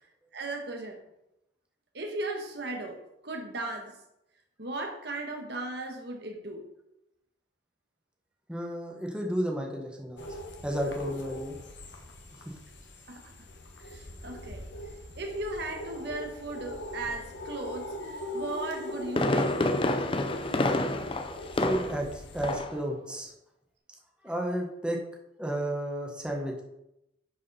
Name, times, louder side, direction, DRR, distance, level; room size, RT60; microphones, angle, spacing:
voice 1, 0.3-1.0 1.9-3.0 3.2-3.9 4.6-6.6 13.1-13.3 13.8-14.6 15.2-17.9 18.3-19.5 20.0-20.1, right 2 dB, 60° right, 3 dB, 1.6 m, -36 dB
voice 2, 8.5-10.3 10.6-11.5 12.4-12.5 21.5-23.3 24.2-25.0 25.4-26.6, equal, 5° right, 0 dB, 1.4 m, -32 dB
sound 1, 10.2-22.6, left 1 dB, 80° left, 1.5 m, -40 dB
Fireworks, 18.7-22.1 22.4-22.8 23.1-23.2, left 2 dB, 30° left, 0.6 m, -28 dB
11.0 x 5.0 x 4.2 m, 0.86 s
head